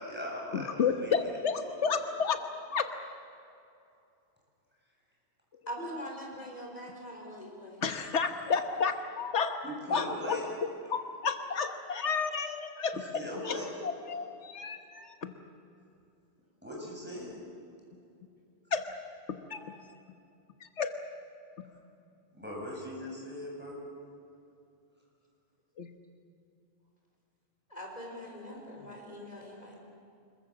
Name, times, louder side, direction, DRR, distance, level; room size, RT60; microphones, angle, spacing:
voice 1, 0.0-1.1 1.8-1.9 9.6-10.5 13.0-13.7 14.1-14.2 16.6-17.4 22.3-23.8, left 1 dB, 10° right, -3 dB, 7.3 m, -39 dB
voice 2, 0.5-2.4 2.7-2.9 5.8-6.0 7.8-9.6 9.9-10.4 10.9-13.0 13.4-13.6 13.8-15.3 18.7-18.9 19.3-19.8 20.8-20.9 25.8-25.9, left 5 dB, 90° left, 7 dB, 1.5 m, -31 dB
voice 3, 5.7-7.8 27.7-29.7, equal, 35° left, -1 dB, 4.9 m, -43 dB
26.0 x 22.5 x 7.3 m, 2.6 s
omnidirectional pair, 1.1 m